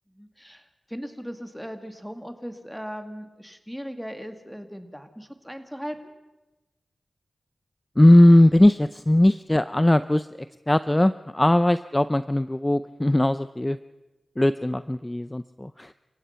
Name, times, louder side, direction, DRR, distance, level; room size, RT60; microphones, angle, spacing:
voice 1, 0.1-6.1, equal, ahead, 7 dB, 2.2 m, -38 dB
voice 2, 8.0-10.3 10.7-13.8 14.4-15.9, left 1 dB, 20° left, 13 dB, 0.6 m, -19 dB
28.5 x 15.5 x 5.8 m, 1.1 s
cardioid pair, 50°, 0 cm